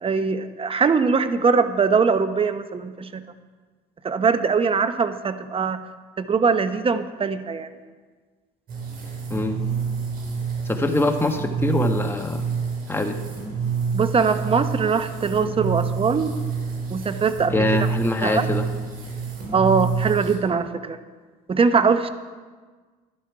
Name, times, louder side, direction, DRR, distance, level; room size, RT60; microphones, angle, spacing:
voice 1, 0.0-3.2 4.0-5.8 6.2-7.8 13.9-16.3 16.9-17.5 18.2-18.5 19.5-21.0 21.5-22.1, right 5 dB, 30° right, 10 dB, 0.9 m, -21 dB
sound 1, 8.7-20.3, right 5 dB, 50° right, 4.5 m, -28 dB
voice 2, 10.6-12.4 12.9-13.2 17.5-18.6, left 2 dB, 10° left, 5 dB, 1.3 m, -23 dB
11.5 x 11.0 x 4.8 m, 1.4 s
supercardioid pair, 85°, 19 cm